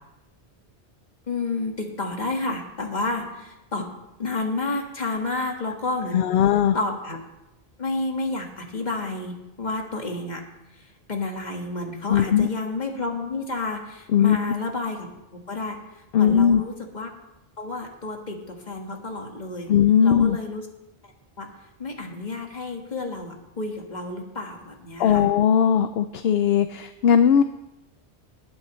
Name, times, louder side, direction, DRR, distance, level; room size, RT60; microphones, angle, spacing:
voice 1, 1.3-3.9 4.2-6.4 6.7-7.2 7.8-10.4 11.1-15.8 16.1-17.1 17.6-19.7 20.0-20.6 21.4-21.5 21.8-25.3, left 3 dB, 40° left, 2 dB, 1.8 m, -30 dB
voice 2, 6.1-6.8 12.1-12.5 14.1-14.4 16.1-16.6 19.7-20.4 25.0-27.4, left 8 dB, 70° left, 10 dB, 0.8 m, -18 dB
20.0 x 9.6 x 3.1 m, 0.95 s
omnidirectional pair, 1.1 m